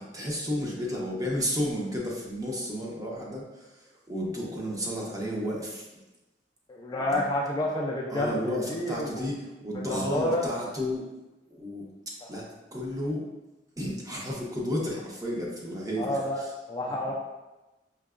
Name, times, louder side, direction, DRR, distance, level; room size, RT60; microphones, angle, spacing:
voice 1, 0.0-3.7 4.1-5.8 7.0-7.2 8.1-11.0 11.5-11.8 12.3-12.4 12.7-13.2 13.8-16.5, equal, 20° right, -3 dB, 0.7 m, -32 dB
voice 2, 6.7-9.3 9.7-10.5 12.2-12.4 16.0-17.1, left 1 dB, 20° left, -3 dB, 0.3 m, -30 dB
4.5 x 2.8 x 2.4 m, 1.1 s
head